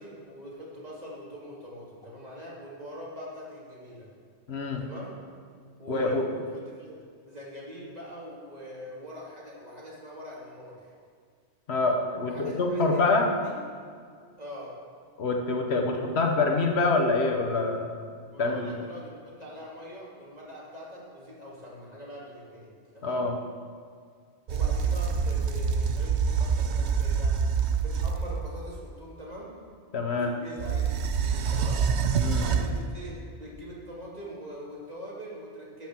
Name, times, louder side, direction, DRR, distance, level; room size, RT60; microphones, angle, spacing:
voice 1, 0.0-4.1 4.8-5.2 5.8-6.9 7.3-10.9 12.2-13.6 14.4-14.8 15.9-16.3 18.3-22.7 22.9-23.3 24.5-27.4 27.8-29.6 30.2-31.8 32.4-35.9, equal, 35° right, -5 dB, 2.9 m, -43 dB
voice 2, 4.5-4.8 5.9-6.3 11.7-13.3 15.2-17.9 18.4-18.7 23.0-23.3 29.9-30.3 32.2-32.5, left 3 dB, 70° left, 2 dB, 1.4 m, -25 dB
sound 1, 24.5-28.6 30.6-32.9, right 6 dB, 80° right, 1.0 m, -26 dB
13.0 x 6.1 x 7.4 m, 2.1 s
omnidirectional pair, 1.1 m